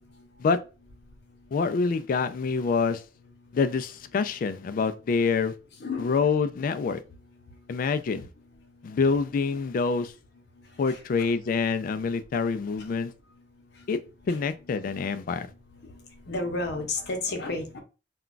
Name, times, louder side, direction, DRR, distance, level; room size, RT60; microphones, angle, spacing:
voice 1, 1.5-3.0 3.5-5.5 6.0-7.0 7.7-8.3 8.8-10.1 10.8-13.1 13.9-14.0 14.3-15.5, left 5 dB, 50° left, 0.3 m, -26 dB
voice 2, 5.8-6.3 10.9-11.3 12.8-12.9 14.3-14.4 15.8-15.9 16.3-17.8, left 2 dB, 65° left, 0.7 m, -32 dB
2.3 x 2.2 x 3.8 m
head